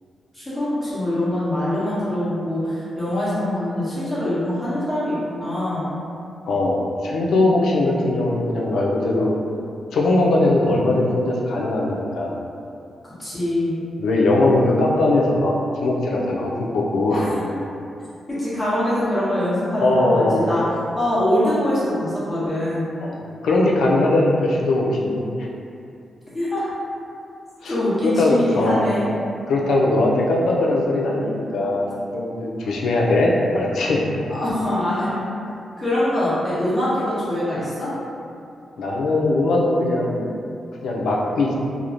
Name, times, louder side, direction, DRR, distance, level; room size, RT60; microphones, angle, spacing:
voice 1, 0.3-6.0 13.2-13.8 17.1-17.4 18.3-20.6 20.9-22.9 26.3-26.7 27.6-29.1 34.3-35.2 35.8-37.9, left 1 dB, 10° left, -12 dB, 1.0 m, -23 dB
voice 2, 6.5-9.4 9.9-12.4 14.0-17.3 19.8-20.5 23.0-25.2 27.6-27.7 28.0-28.9 29.5-34.0 38.8-40.2 40.8-41.5, left 2 dB, 85° left, -3 dB, 0.4 m, -20 dB
3.0 x 2.0 x 2.4 m, 2.6 s
cardioid pair, 120°, 0 cm